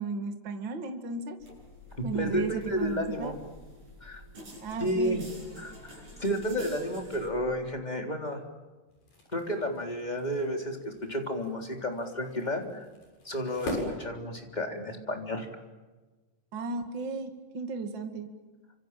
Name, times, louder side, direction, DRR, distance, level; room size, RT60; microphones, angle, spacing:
voice 1, 0.0-1.4 2.0-3.3 4.6-5.2 16.5-18.3, right 4 dB, 35° right, 5 dB, 2.7 m, -34 dB
sound 1, 1.4-7.3, equal, 50° right, 8.7 m, -46 dB
voice 2, 2.0-3.4 4.0-4.2 4.8-5.2 5.6-8.4 9.3-12.8 13.2-15.5, equal, 10° left, 2 dB, 3.4 m, -32 dB
sound 2, 8.9-14.9, left 2 dB, 75° left, 9.0 m, -41 dB
29.0 x 27.0 x 7.6 m, 1.3 s
omnidirectional pair, 4.0 m